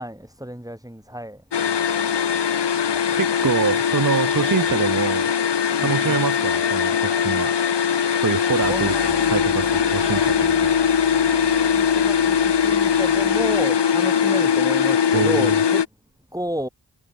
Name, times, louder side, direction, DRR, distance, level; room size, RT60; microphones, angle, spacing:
voice 1, 0.0-1.4 2.3-2.4 2.9-3.0 5.7-6.2 8.7-9.1 11.4-15.8 16.3-16.7, equal, 10° right, 6.0 m, -31 dB
sound 1, 1.5-15.9, left 7 dB, 90° left, 1.0 m, -20 dB
voice 2, 3.2-5.3 5.8-7.5 8.2-10.7 15.1-15.5, right 7 dB, 50° right, 0.6 m, -25 dB
sound 2, 8.6-13.6, right 6 dB, 90° right, 1.8 m, -38 dB
wide cardioid pair, 45°, 40 cm